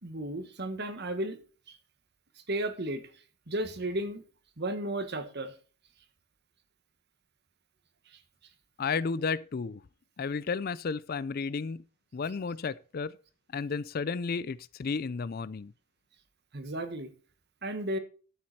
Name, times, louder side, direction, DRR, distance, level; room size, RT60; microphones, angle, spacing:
voice 1, 0.0-1.4 1.7-1.8 2.5-3.0 3.5-4.2 4.6-5.5 8.1-8.2 16.5-17.1 17.6-18.0, right 1 dB, 50° right, 1.4 m, -34 dB
voice 2, 8.8-9.8 10.2-11.8 12.1-13.1 13.5-15.7, left 5 dB, 45° left, 0.4 m, -32 dB
12.5 x 7.7 x 4.3 m
head